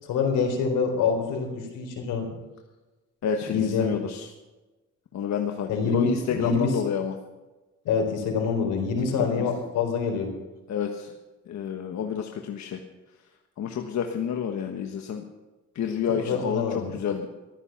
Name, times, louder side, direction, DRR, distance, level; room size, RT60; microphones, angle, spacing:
voice 1, 0.0-2.3 3.5-3.9 5.7-6.8 7.8-10.3 16.2-17.0, left 5 dB, 85° left, 3 dB, 4.1 m, -26 dB
voice 2, 3.2-4.3 5.1-7.1 9.2-9.5 10.7-11.1 11.5-12.8 13.6-15.2 15.7-16.6 16.9-17.3, left 7 dB, 65° left, 4 dB, 1.4 m, -29 dB
15.0 x 12.5 x 5.9 m, 1.2 s
cardioid pair, 90°, 30 cm